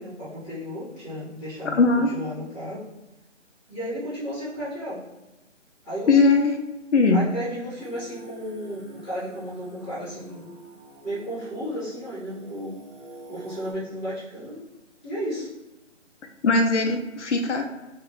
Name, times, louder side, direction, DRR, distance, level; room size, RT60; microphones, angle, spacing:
voice 1, 0.0-1.8 2.1-2.8 3.7-5.0 5.8-6.2 7.1-10.5 11.0-12.8 13.3-14.6 15.0-15.5, equal, 5° right, -24 dB, 0.6 m, -33 dB
voice 2, 1.6-2.1 6.1-6.6 6.9-7.2 16.4-17.6, left 3 dB, 70° left, 4 dB, 0.6 m, -19 dB
Singing, 7.8-13.7, right 2 dB, 30° right, 1.1 m, -46 dB
3.0 x 2.2 x 3.6 m, 1.1 s
figure-of-eight pair, 150°, 37 cm